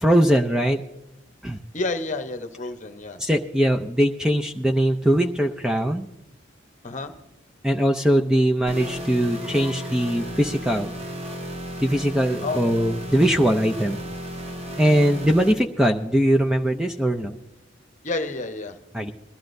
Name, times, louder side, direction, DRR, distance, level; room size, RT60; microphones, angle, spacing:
voice 1, 0.0-0.8 1.4-1.6 3.2-6.1 7.6-10.9 11.8-14.0 14.8-17.4 18.9-19.1, equal, 5° right, 3 dB, 0.5 m, -21 dB
voice 2, 1.7-3.2 6.8-7.1 12.4-12.6 18.0-18.8, left 3 dB, 40° left, 8 dB, 0.9 m, -29 dB
sound 1, 8.7-15.5, equal, 30° right, 1.1 m, -34 dB
20.5 x 13.0 x 2.6 m, 0.95 s
head